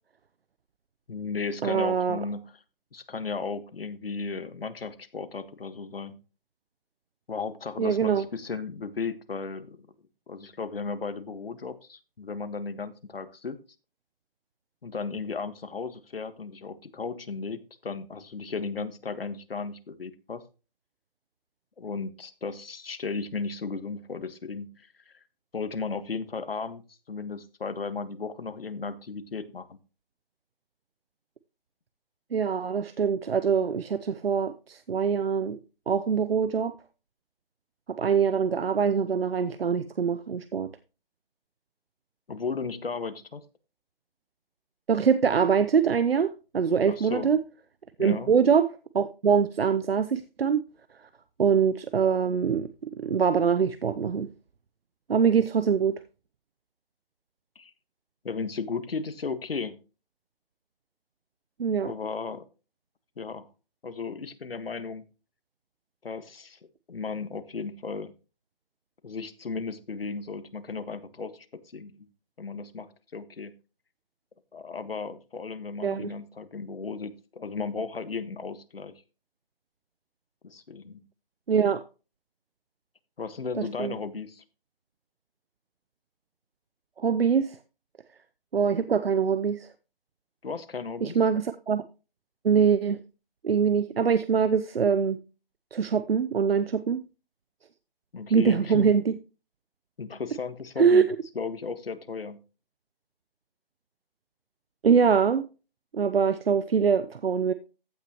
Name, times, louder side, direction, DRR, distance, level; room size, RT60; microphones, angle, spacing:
voice 1, 1.1-2.4 2.9-6.2 7.3-9.9 10.3-13.6 14.8-20.4 21.8-25.2 25.5-29.8 42.3-43.4 46.8-47.3 48.0-48.3 57.5-57.7 58.2-59.8 61.8-62.4 63.2-63.5 63.8-65.0 66.0-66.6 66.9-68.1 69.0-71.5 71.7-71.9 72.4-73.5 74.5-78.9 80.4-81.0 83.2-84.4 90.4-91.2 98.1-98.9 100.0-101.1 101.3-102.4, left 4 dB, 80° left, 1.6 m, -35 dB
voice 2, 1.6-2.2 7.8-8.3 32.3-35.6 35.9-36.7 37.9-40.7 44.9-47.4 48.0-50.6 51.4-54.3 55.1-56.0 61.6-61.9 75.8-76.1 81.5-81.8 83.6-83.9 87.0-87.6 88.5-89.7 91.0-91.8 92.4-93.0 93.4-95.2 95.7-97.0 98.3-99.1 100.8-101.0 104.8-105.4 105.9-107.5, right 6 dB, 85° right, 0.8 m, -24 dB
15.0 x 6.1 x 3.0 m
hypercardioid pair, 175°, 29 cm